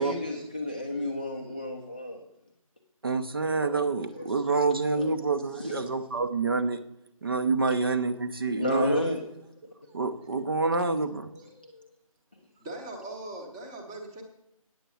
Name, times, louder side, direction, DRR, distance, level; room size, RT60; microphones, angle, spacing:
voice 1, 0.0-2.2 4.1-4.6 5.0-5.1 5.6-5.7 7.6-7.7 8.5-9.2, left 1 dB, 15° left, 0 dB, 0.5 m, -31 dB
voice 2, 3.0-6.8 7.2-9.1 9.9-11.3, right 3 dB, 40° right, 8 dB, 0.6 m, -27 dB
voice 3, 11.2-11.9 12.6-14.2, right 1 dB, 10° right, 1 dB, 0.9 m, -42 dB
9.2 x 7.3 x 6.9 m, 0.81 s
figure-of-eight pair, 165°, 18 cm